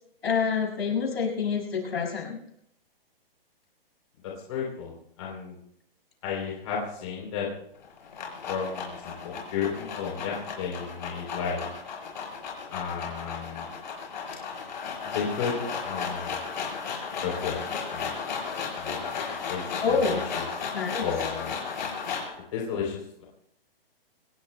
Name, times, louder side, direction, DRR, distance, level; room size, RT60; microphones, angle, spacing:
voice 1, 0.2-2.4 19.8-20.2 20.7-21.1, left 5 dB, 80° left, 2 dB, 6.3 m, -27 dB
voice 2, 4.2-5.5 6.2-7.5 8.5-11.7 12.7-13.7 15.0-15.6 15.8-16.4 17.2-17.6 17.9-18.1 18.7-19.1 19.5-20.5 21.0-21.6 22.5-23.2, left 6 dB, 35° left, -2 dB, 3.4 m, -33 dB
sound 1, 7.8-22.4, left 5 dB, 50° left, 6.3 m, -35 dB
30.0 x 17.5 x 2.2 m, 0.73 s
hypercardioid pair, 170°, 30 cm